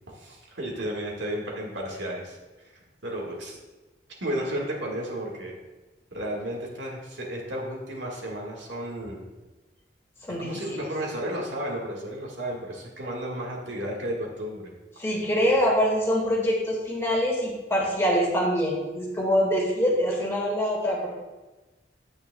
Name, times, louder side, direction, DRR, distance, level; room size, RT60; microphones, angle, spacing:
voice 1, 0.1-2.4 3.0-3.6 4.2-5.5 6.1-9.2 10.4-14.7, right 1 dB, 75° right, -1 dB, 1.7 m, -33 dB
voice 2, 10.2-10.8 15.0-21.1, equal, 15° left, -3 dB, 1.8 m, -24 dB
9.3 x 8.5 x 2.3 m, 1.1 s
head